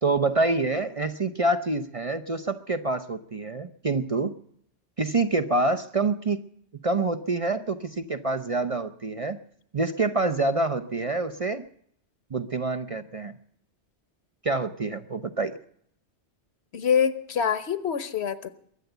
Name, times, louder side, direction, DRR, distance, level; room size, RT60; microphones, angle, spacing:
voice 1, 0.0-4.3 5.0-6.4 6.8-9.4 9.7-11.7 12.3-13.4 14.4-15.6, right 3 dB, 35° right, 9 dB, 0.6 m, -26 dB
voice 2, 16.7-18.5, left 7 dB, 70° left, 14 dB, 1.2 m, -25 dB
22.0 x 8.0 x 8.0 m, 0.67 s
omnidirectional pair, 1.2 m